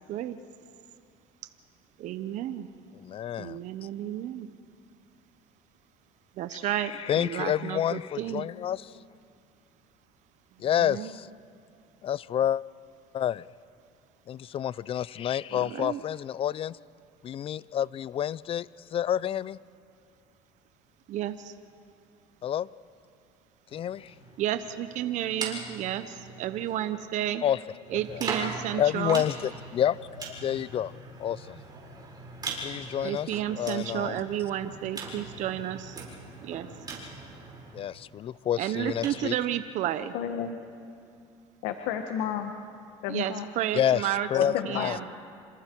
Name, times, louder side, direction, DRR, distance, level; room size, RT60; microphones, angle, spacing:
voice 1, 2.0-2.7 3.4-4.5 6.3-8.5 10.5-11.1 15.5-16.0 21.1-21.6 24.4-27.4 27.9-29.2 33.0-36.1 36.4-36.9 38.6-40.1 43.1-45.1, right 12 dB, 60° right, 10 dB, 0.9 m, -32 dB
voice 2, 3.0-3.6 7.1-9.0 10.6-11.3 12.0-12.6 13.1-13.4 14.3-16.8 17.2-19.6 22.4-22.7 23.7-24.1 27.4-27.6 28.8-29.3 29.7-30.9 31.2-31.6 32.6-33.3 33.6-34.1 37.7-39.3 43.8-44.0 44.3-45.0, left 10 dB, 40° left, 21 dB, 0.5 m, -29 dB
sound 1, 23.7-26.9 27.8-37.9 38.7-39.2, right 3 dB, 30° right, 7.3 m, -41 dB
voice 3, 40.1-40.6 41.6-42.5 43.0-43.4 44.3-44.9, left 9 dB, 80° left, 6 dB, 1.4 m, -31 dB
28.0 x 26.0 x 4.6 m, 2.5 s
supercardioid pair, 95°, 14 cm